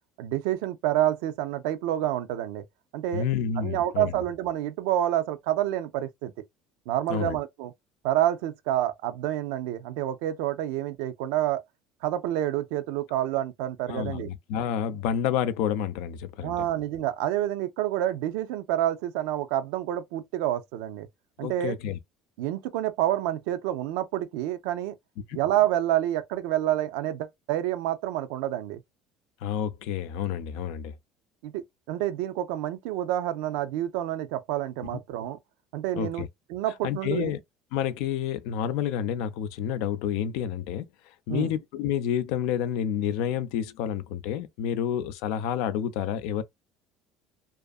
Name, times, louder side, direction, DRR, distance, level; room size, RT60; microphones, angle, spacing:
voice 1, 0.2-2.6 2.9-3.2 3.6-6.3 6.9-7.7 8.0-11.6 12.0-14.3 16.4-21.1 21.4-21.8 22.4-24.9 25.3-28.8 31.4-35.4 35.7-36.2 36.5-37.3 41.3-41.5, right 13 dB, 80° right, 0.4 m, -28 dB
voice 2, 3.1-4.2 7.1-7.4 13.9-16.7 21.4-22.0 25.3-25.4 29.4-31.0 34.9-35.0 36.0-36.3 36.8-37.4 37.7-46.4, left 9 dB, 80° left, 0.4 m, -29 dB
2.5 x 2.4 x 2.3 m
supercardioid pair, 95°, 0 cm